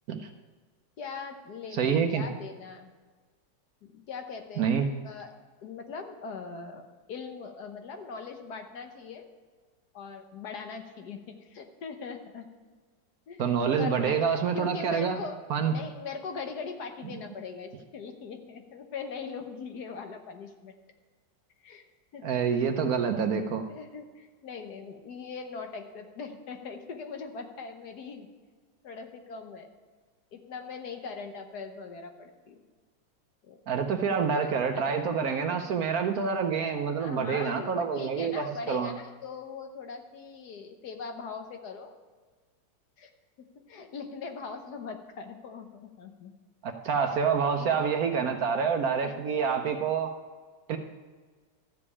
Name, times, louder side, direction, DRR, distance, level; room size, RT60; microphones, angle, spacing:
voice 1, 1.0-2.9 3.8-4.7 5.0-5.3 5.6-9.3 9.9-12.5 13.3-14.2 14.5-20.7 21.6-21.8 22.1-22.4 23.7-28.3 28.8-29.7 30.3-32.6 33.4-33.6 34.2-34.9 37.0-41.9 43.0-43.1 43.4-46.3 47.1-47.2 47.5-47.8 49.0-49.1, left 5 dB, 65° left, 5 dB, 1.4 m, -41 dB
voice 2, 1.7-2.2 4.6-4.9 13.4-15.2 15.5-15.7 22.2-23.6 33.7-38.9 46.6-50.1 50.7-50.8, right 6 dB, 65° right, 6 dB, 1.0 m, -27 dB
13.0 x 5.1 x 8.4 m, 1.4 s
omnidirectional pair, 2.0 m